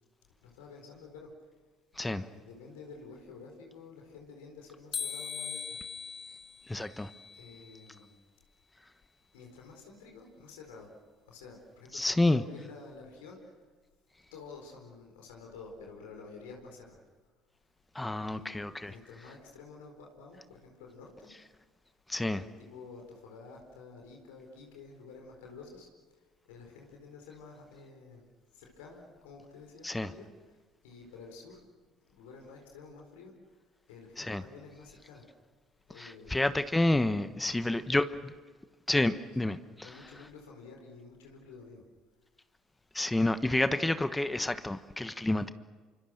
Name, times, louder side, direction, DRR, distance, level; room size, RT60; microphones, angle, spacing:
voice 1, 0.4-1.3 1.9-5.8 7.3-8.2 9.3-10.9 11.3-13.6 14.3-17.0 18.1-21.3 22.3-25.9 26.1-28.3 28.5-31.6 32.1-33.6 33.9-35.3 35.9-36.5 37.4-37.8 39.3-39.4 39.8-41.8, left 4 dB, 80° left, 4.4 m, -50 dB
sound 1, 4.9-8.0, left 6 dB, 45° left, 2.7 m, -41 dB
voice 2, 6.7-7.1 11.9-12.4 17.9-18.9 22.1-22.4 29.8-30.1 34.2-34.4 36.0-38.3 38.9-39.9 42.9-45.5, left 2 dB, 15° left, 1.2 m, -29 dB
28.0 x 25.5 x 6.6 m
hypercardioid pair, 60°, 0 cm